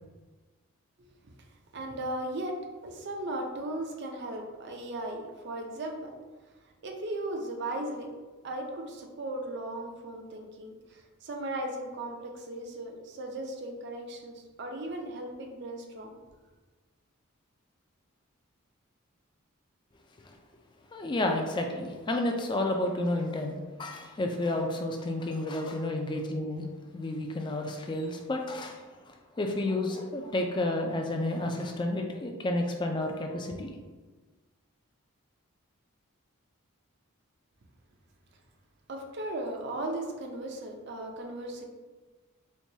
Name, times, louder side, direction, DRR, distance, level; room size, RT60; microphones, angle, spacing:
voice 1, 1.7-6.1 6.8-8.1 8.4-16.2 38.9-41.6, right 1 dB, 50° right, 2 dB, 0.5 m, -37 dB
voice 2, 20.9-26.6 26.9-33.7, left 1 dB, 20° left, 3 dB, 0.3 m, -31 dB
4.5 x 2.2 x 2.7 m, 1.3 s
head